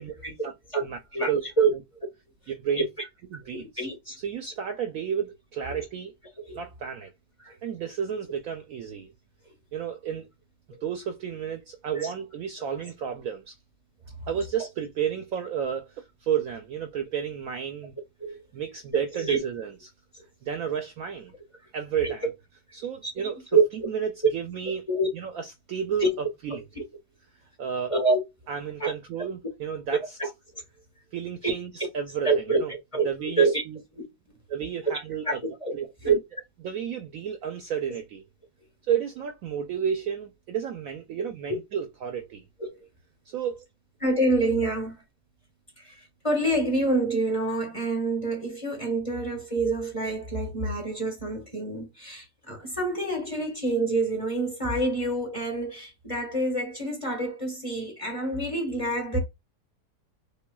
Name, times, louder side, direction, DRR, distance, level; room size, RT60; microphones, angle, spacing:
voice 1, 0.0-0.8 1.1-1.3 1.6-1.7 3.8-4.2 4.4-4.5 5.8-5.9 6.5-6.6 7.4-7.5 11.9-12.1 18.2-18.4 18.9-19.4 20.1-20.2 22.0-22.1 23.0-23.9 24.9-25.1 26.0-26.1 27.9-28.2 28.8-28.9 31.4-31.5 32.2-33.1 33.4-33.6 33.9-34.0 35.2-35.7 36.0-36.1 37.9-38.0 42.6-42.9 44.0-45.0 45.8-59.2, right 2 dB, 20° left, 1.3 m, -27 dB
voice 2, 2.5-2.9 3.3-3.8 4.2-6.1 6.5-7.1 7.6-9.1 9.7-10.3 10.8-13.5 14.3-17.9 18.5-19.9 20.4-21.3 21.7-22.3 22.7-23.4 23.9-24.8 25.1-26.1 26.4-26.6 27.6-27.9 28.5-30.0 31.1-32.7 33.0-33.8 34.5-35.4 35.7-35.9 36.6-38.2 38.9-42.4 43.3-43.6, right 8 dB, 70° right, 0.9 m, -31 dB
5.3 x 2.3 x 2.3 m
omnidirectional pair, 1.8 m